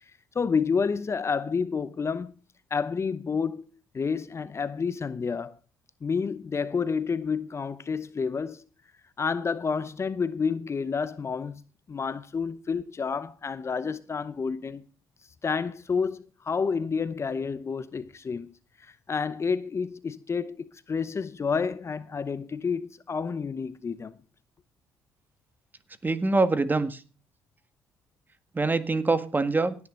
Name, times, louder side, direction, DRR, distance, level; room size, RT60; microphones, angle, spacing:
voice 1, 0.3-2.3 2.7-3.6 3.9-5.5 6.0-8.6 9.2-11.6 11.9-14.8 15.4-18.5 19.1-24.1, left 5 dB, 35° left, 0.8 m, -29 dB
voice 2, 26.0-27.0 28.5-29.8, right 3 dB, 25° right, 1.7 m, -24 dB
17.5 x 9.7 x 3.9 m
hypercardioid pair, 60°, 8 cm